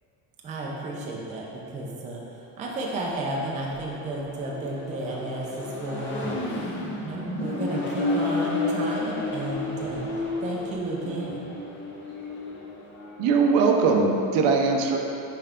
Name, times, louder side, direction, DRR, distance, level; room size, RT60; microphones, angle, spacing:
voice 1, 0.4-6.4 7.0-10.1 10.4-11.4, right 2 dB, 20° right, -3 dB, 0.4 m, -32 dB
Accelerating revving vroom, 2.8-13.2, left 2 dB, 30° left, 0.7 m, -32 dB
voice 2, 13.2-15.0, right 4 dB, 60° right, 2 dB, 0.7 m, -21 dB
5.6 x 4.6 x 3.6 m, 2.8 s
cardioid pair, 170°, 40 cm